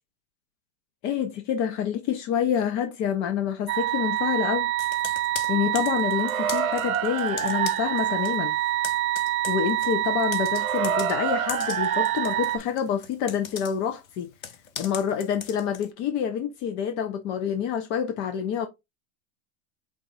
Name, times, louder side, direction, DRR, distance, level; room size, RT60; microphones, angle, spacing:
voice 1, 1.0-4.7 5.5-8.5 9.5-14.3 14.8-18.7, left 8 dB, 30° left, 0.5 m, -27 dB
sound 1, 3.7-12.6, right 12 dB, 70° right, 1.0 m, -26 dB
Computer keyboard, 4.8-8.4 8.6-15.9, left 8 dB, 70° left, 0.9 m, -39 dB
4.7 x 2.3 x 4.0 m
hypercardioid pair, 100°, 42 cm